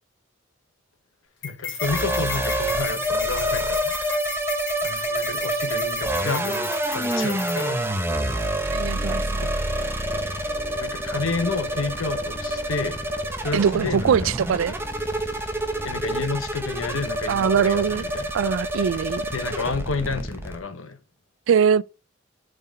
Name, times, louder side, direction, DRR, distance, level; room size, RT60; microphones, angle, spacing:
voice 1, 1.4-4.2 4.8-7.8 8.4-8.7 9.4-9.6 10.7-13.0 13.4-14.3 15.8-18.3 19.3-21.0, left 4 dB, 90° left, 1.1 m, -30 dB
sound 1, 1.4-7.9, left 6 dB, 70° left, 2.6 m, -35 dB
sound 2, 1.8-20.6, right 1 dB, 10° right, 1.0 m, -27 dB
sound 3, 8.1-16.3, left 1 dB, 25° right, 3.2 m, -41 dB
voice 2, 8.7-9.2 13.5-14.7 17.3-18.0 18.3-19.3 21.5-21.8, right 7 dB, 70° right, 0.3 m, -21 dB
8.8 x 4.8 x 4.7 m
head